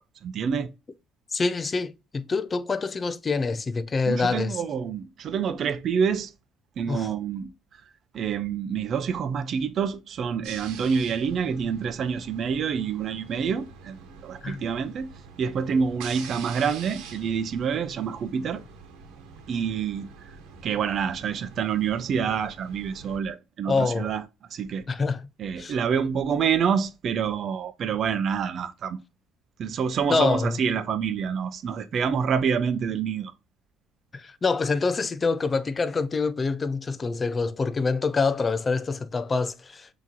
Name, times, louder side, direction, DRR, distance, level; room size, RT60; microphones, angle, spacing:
voice 1, 0.2-0.7 4.1-6.3 6.8-7.5 8.1-15.1 15.4-18.6 19.5-20.1 20.6-24.2 24.5-24.8 25.4-29.0 29.6-33.3, right 7 dB, 50° right, 0.6 m, -27 dB
voice 2, 1.3-4.6 6.9-7.1 14.4-14.6 23.7-24.1 24.9-25.3 25.6-25.7 30.1-30.6 34.1-39.9, left 4 dB, 25° left, 0.4 m, -26 dB
sound 1, 10.4-23.2, right 6 dB, 85° right, 1.1 m, -45 dB
6.0 x 2.9 x 2.7 m
cardioid pair, 125°, 0 cm